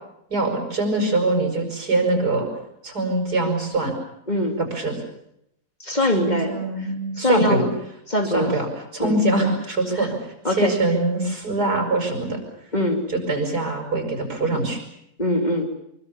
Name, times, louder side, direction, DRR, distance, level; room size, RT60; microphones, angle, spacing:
voice 1, 0.3-2.5 2.8-3.9 4.6-5.0 6.1-7.6 8.2-8.7 8.9-10.2 10.5-12.4 13.1-14.8, right 2 dB, 80° right, 4 dB, 7.4 m, -23 dB
voice 2, 4.3-4.6 5.8-6.5 6.8-6.9 7.2-7.7 8.1-8.5 9.0-9.2 9.9-10.1 10.4-10.7 12.7-13.0 15.2-15.7, left 1 dB, 25° left, 4 dB, 3.2 m, -22 dB
25.5 x 24.5 x 7.1 m, 0.78 s
omnidirectional pair, 1.7 m